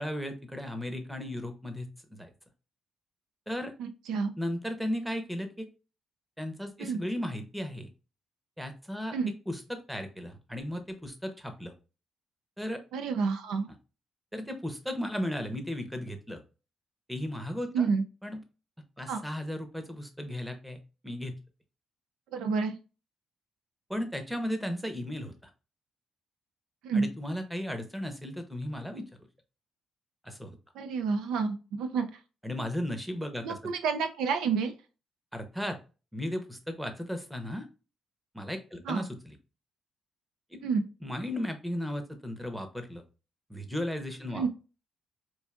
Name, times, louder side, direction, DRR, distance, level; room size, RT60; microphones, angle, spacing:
voice 1, 0.0-2.3 3.5-3.7 4.4-5.7 6.4-7.9 8.6-9.2 9.5-11.7 12.6-12.8 14.3-16.4 17.1-17.9 18.2-18.4 19.0-20.8 21.0-21.3 23.9-25.3 26.9-29.1 30.2-30.5 32.4-33.6 35.3-35.8 36.1-37.7 38.3-39.4 40.5-40.6 41.0-43.0 43.5-44.5, left 1 dB, 5° right, 7 dB, 0.7 m, -35 dB
voice 2, 3.8-4.3 6.8-7.0 9.1-9.3 12.9-13.7 17.7-18.0 19.1-19.2 22.3-22.8 26.8-27.1 30.7-32.1 33.4-34.7 38.9-39.0 40.6-40.8 44.3-44.5, right 5 dB, 90° right, 8 dB, 0.4 m, -29 dB
4.6 x 2.5 x 2.4 m, 0.32 s
cardioid pair, 90°, 0 cm